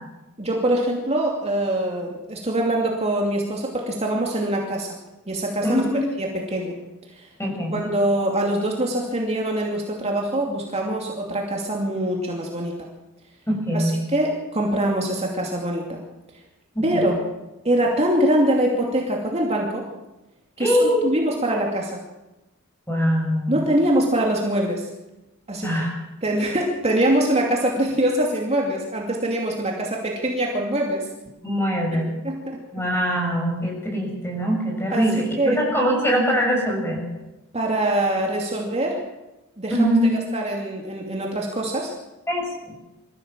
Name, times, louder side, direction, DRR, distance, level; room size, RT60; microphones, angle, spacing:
voice 1, 0.4-4.9 5.3-6.8 7.1-7.3 7.7-12.7 13.7-16.0 16.8-17.1 17.6-19.8 20.6-22.0 23.5-24.9 25.5-25.7 26.2-31.1 32.2-32.6 34.9-35.1 35.4-35.6 37.5-39.0 39.6-41.9, right 1 dB, 30° right, -1 dB, 2.6 m, -23 dB
voice 2, 5.6-6.0 7.4-7.8 13.5-13.9 16.8-17.1 20.6-21.1 22.9-23.5 25.6-25.9 31.4-32.1 32.7-37.0 39.7-40.1 42.3-42.5, equal, 10° left, 0 dB, 7.2 m, -22 dB
23.5 x 15.0 x 7.5 m, 1.0 s
head